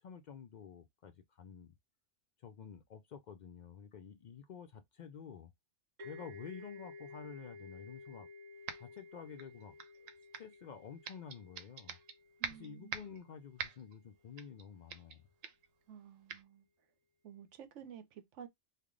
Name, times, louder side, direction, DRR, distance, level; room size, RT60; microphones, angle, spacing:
voice 1, 0.0-1.7 2.4-5.5 6.0-8.3 8.8-10.1 10.4-12.0 12.5-15.2, left 7 dB, 80° left, 0.4 m, -50 dB
sound 1, 6.0-13.5, left 3 dB, 40° right, 0.9 m, -54 dB
sound 2, 8.7-9.0 9.4-10.6 11.0-12.1 12.4-13.2 13.6-13.9 14.4-14.6 14.9-15.2 15.4-15.7 16.3-16.4, right 7 dB, 90° right, 1.0 m, -44 dB
voice 2, 12.4-12.9 15.9-16.7 17.2-18.5, right 8 dB, 70° right, 1.0 m, -52 dB
3.3 x 2.2 x 3.7 m
omnidirectional pair, 1.3 m